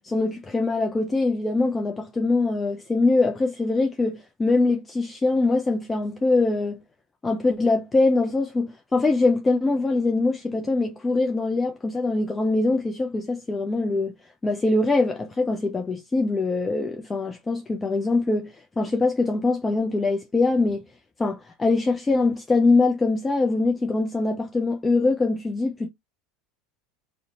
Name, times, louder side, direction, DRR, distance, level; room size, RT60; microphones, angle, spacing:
voice 1, 0.0-6.8 7.2-14.1 14.4-20.9 21.2-25.9, left 3 dB, 20° left, 0.4 m, -23 dB
2.6 x 2.1 x 2.7 m
hypercardioid pair, 80°, 0 cm